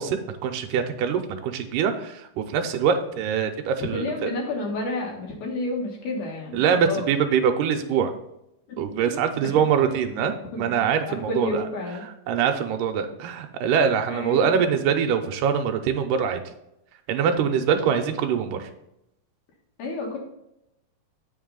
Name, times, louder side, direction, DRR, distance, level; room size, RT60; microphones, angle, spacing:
voice 1, 0.0-4.3 6.5-8.1 8.8-11.7 12.0-16.4 17.1-18.7, right 7 dB, 80° right, 6 dB, 2.3 m, -24 dB
voice 2, 3.9-7.1 8.7-8.8 9.4-9.5 10.5-12.0 14.1-14.6 19.8-20.2, left 2 dB, 70° left, 0 dB, 2.9 m, -30 dB
8.0 x 5.3 x 3.8 m, 0.84 s
omnidirectional pair, 3.9 m